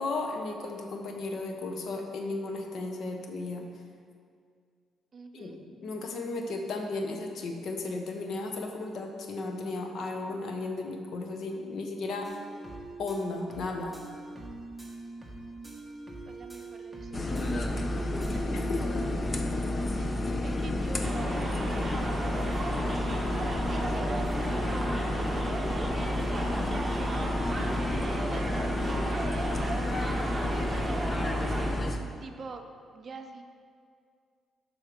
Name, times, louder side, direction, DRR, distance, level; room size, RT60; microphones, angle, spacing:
voice 1, 0.0-3.6 5.3-5.5 5.8-12.3 13.0-13.9 18.5-18.8, left 3 dB, 65° left, 3 dB, 1.0 m, -34 dB
voice 2, 5.1-5.6 16.3-18.5 19.0-19.1 19.9-23.1 23.3-25.9 26.6-31.5 32.2-32.6 32.9-33.4, right 4 dB, 45° right, 6 dB, 0.7 m, -46 dB
sound 1, 12.2-18.9, right 3 dB, ahead, 1.5 m, -44 dB
sound 2, 17.1-32.0, left 1 dB, 30° left, 0.7 m, -30 dB
sound 3, 21.0-31.7, right 2 dB, 20° right, 1.2 m, -35 dB
7.5 x 5.6 x 5.1 m, 2.2 s
cardioid pair, 90°, 0 cm